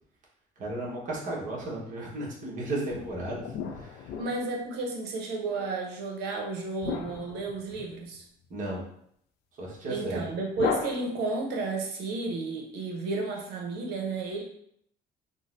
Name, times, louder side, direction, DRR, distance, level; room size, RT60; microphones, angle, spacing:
voice 1, 0.6-4.2 8.5-8.8 9.5-10.3, right 1 dB, 50° right, -4 dB, 1.1 m, -35 dB
sound 1, 2.9-4.9 6.8-8.2 10.5-11.6, left 6 dB, 75° left, 0.4 m, -35 dB
voice 2, 4.2-8.2 9.9-14.4, right 3 dB, 85° right, 1 dB, 0.8 m, -32 dB
3.8 x 2.1 x 2.5 m, 0.69 s
cardioid pair, 110°, 17 cm